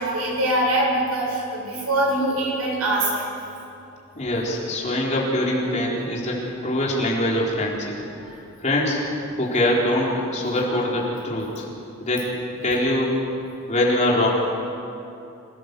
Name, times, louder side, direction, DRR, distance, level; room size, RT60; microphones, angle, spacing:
voice 1, 0.0-3.2 8.2-8.3, right 1 dB, 80° right, -2 dB, 7.6 m, -23 dB
voice 2, 4.2-6.4 6.6-8.0 8.6-9.0 9.4-11.6 12.0-12.2 12.6-13.2 13.7-14.3, left 1 dB, 35° left, -4 dB, 4.2 m, -23 dB
26.5 x 18.0 x 6.9 m, 2.7 s
head